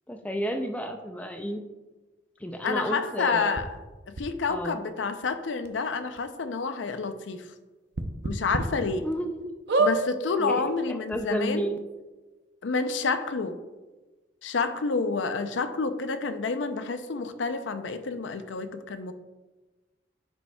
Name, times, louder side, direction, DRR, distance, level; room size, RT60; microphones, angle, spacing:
voice 1, 0.1-1.6 2.4-3.6 4.5-4.8 9.0-9.4 10.4-10.6 10.9-11.8, equal, 10° left, 5 dB, 0.4 m, -31 dB
voice 2, 2.6-3.7 4.1-7.5 8.2-9.1 9.8-11.7 12.6-13.6 14.4-19.1, left 4 dB, 90° left, 10 dB, 0.5 m, -29 dB
sound 1, 3.6-3.7 4.2-4.3 5.2-5.3 5.6-5.7 6.2-6.3 7.9-8.6 9.1-9.2 9.7-10.0 10.8-10.9 11.1-11.2, right 2 dB, 65° right, 0.6 m, -25 dB
9.8 x 5.4 x 2.3 m, 1.2 s
head